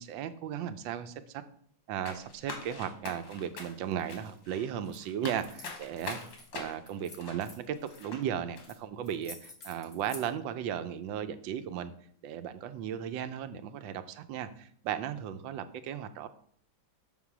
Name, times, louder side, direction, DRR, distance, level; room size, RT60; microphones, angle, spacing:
voice 1, 0.0-1.4 1.9-6.2 6.5-11.9 12.2-16.3, right 9 dB, 85° right, 11 dB, 1.3 m, -36 dB
sound 1, 2.1-8.2 8.5-8.7, left 4 dB, 80° left, 1.9 m, -44 dB
sound 2, 4.8-5.0 5.3-6.5 6.9-8.0 8.6-8.8 9.0-10.3, left 3 dB, 35° left, 1.5 m, -49 dB
6.3 x 3.8 x 5.9 m, 0.62 s
omnidirectional pair, 2.0 m